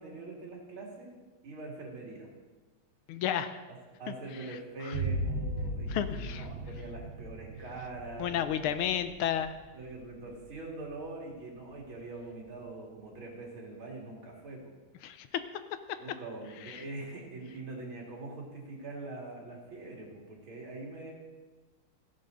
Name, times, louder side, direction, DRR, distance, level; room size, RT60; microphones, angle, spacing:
voice 1, 0.0-2.3 4.0-8.8 9.7-14.6 16.0-21.1, right 2 dB, 70° right, -2 dB, 3.3 m, -43 dB
voice 2, 3.1-3.6 4.1-4.5 4.8-5.0 5.9-6.5 8.2-9.5 15.0-15.4 16.6-16.8, left 10 dB, 80° left, 11 dB, 1.5 m, -32 dB
sound 1, 4.9-12.3, right 1 dB, 55° right, 1.6 m, -38 dB
15.0 x 10.5 x 4.0 m, 1.3 s
omnidirectional pair, 2.4 m